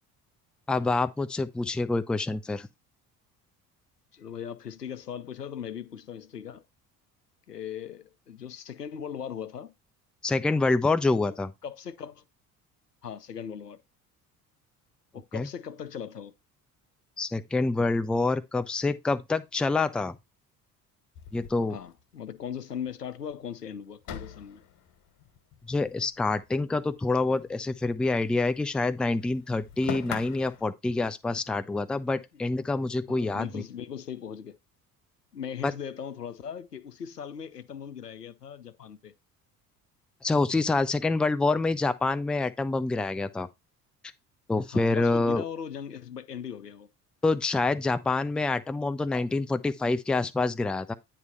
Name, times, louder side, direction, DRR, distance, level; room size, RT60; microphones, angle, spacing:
voice 1, 0.7-2.7 10.2-11.5 15.3-15.5 17.2-20.2 21.3-21.8 25.7-33.6 35.6-35.7 40.2-43.5 44.5-45.4 47.2-50.9, left 3 dB, ahead, 0.4 m, -27 dB
voice 2, 4.1-6.6 7.5-9.7 11.2-11.4 11.6-12.2 13.0-13.8 15.1-16.3 21.7-24.6 33.1-34.6 35.3-39.1 44.7-46.9, left 8 dB, 90° left, 0.6 m, -39 dB
sound 1, 21.1-22.5 22.8-22.9 23.2-23.3 24.0-26.5 26.8-28.6 28.9-30.6, left 10 dB, 45° left, 1.6 m, -42 dB
9.5 x 3.2 x 5.7 m
figure-of-eight pair, 55°, 46 cm